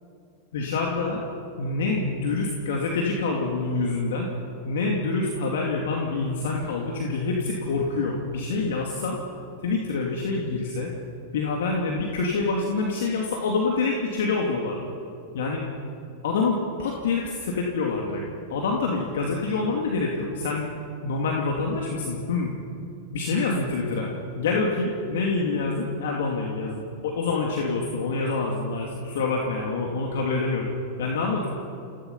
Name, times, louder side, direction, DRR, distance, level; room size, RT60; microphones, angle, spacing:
voice 1, 0.5-1.2 1.6-4.3 4.6-9.2 9.6-10.9 11.3-14.8 15.3-15.6 16.2-18.2 18.5-20.7 21.0-22.5 23.1-24.1 24.4-30.7 31.0-31.5, left 3 dB, 75° left, -1 dB, 2.7 m, -26 dB
27.0 x 17.0 x 5.7 m, 2.6 s
hypercardioid pair, 105°, 0 cm